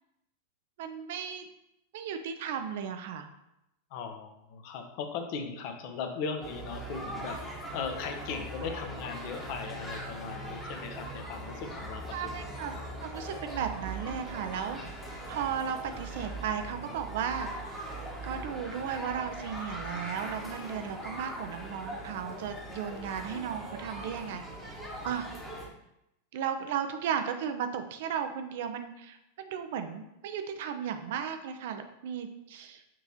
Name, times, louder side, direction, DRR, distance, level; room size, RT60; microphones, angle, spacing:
voice 1, 0.8-1.5 1.9-3.3 12.1-12.7 13.0-14.8 15.3-17.8 18.2-24.8 25.0-25.3 26.3-32.8, right 8 dB, 55° right, 7 dB, 0.4 m, -35 dB
voice 2, 3.9-12.5 12.7-12.8, left 5 dB, 45° left, 6 dB, 0.6 m, -38 dB
sound 1, 6.4-25.7, right 1 dB, 5° left, 1.0 m, -41 dB
5.9 x 2.9 x 2.8 m, 0.85 s
figure-of-eight pair, 90°, 0 cm